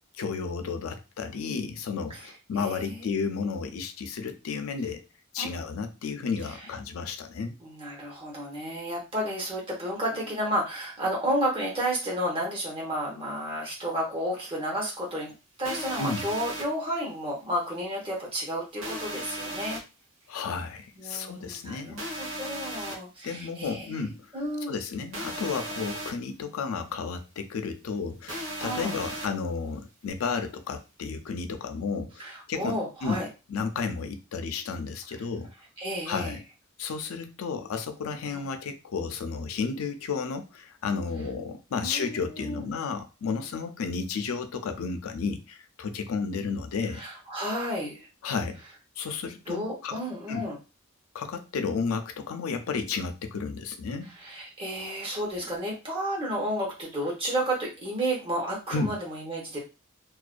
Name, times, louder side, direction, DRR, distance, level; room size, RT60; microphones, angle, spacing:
voice 1, 0.2-5.0 5.3-7.6 16.0-16.3 20.3-22.1 23.2-24.3 24.7-35.5 36.1-36.4 36.8-47.0 48.2-48.6 49.0-50.0 50.3-50.4 51.1-54.1 58.7-58.9, left 5 dB, 90° left, 8 dB, 0.4 m, -32 dB
voice 2, 2.6-3.1 5.4-5.6 6.5-6.6 7.6-19.8 21.0-24.8 28.6-29.0 32.2-33.3 35.8-36.4 38.3-38.5 41.7-42.7 46.9-48.1 49.5-50.6 54.1-59.6, equal, 25° right, -2 dB, 0.9 m, -32 dB
sound 1, 15.6-16.6 18.8-19.8 22.0-22.9 25.1-26.1 28.3-29.3, right 1 dB, 80° right, 1.0 m, -35 dB
2.4 x 2.1 x 2.4 m, 0.30 s
head